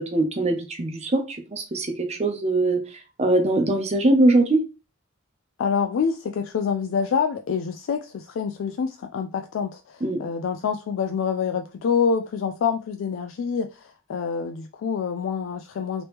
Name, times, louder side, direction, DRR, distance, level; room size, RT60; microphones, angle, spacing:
voice 1, 0.0-2.8 3.2-4.6 10.0-10.2, right 2 dB, 35° right, 0.7 m, -22 dB
voice 2, 5.6-16.0, left 6 dB, 80° left, 0.3 m, -26 dB
3.0 x 3.0 x 3.3 m
head